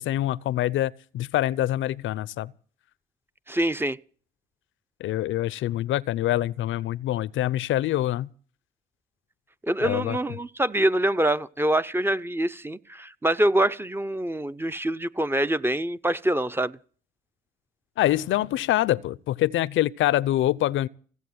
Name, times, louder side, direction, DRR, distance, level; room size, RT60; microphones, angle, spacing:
voice 1, 0.0-2.5 5.0-8.3 9.8-10.2 18.0-20.9, left 14 dB, 75° left, 0.6 m, -25 dB
voice 2, 3.5-4.0 9.6-16.8, right 1 dB, 10° right, 0.7 m, -25 dB
16.5 x 8.2 x 9.5 m
cardioid pair, 90°, 20 cm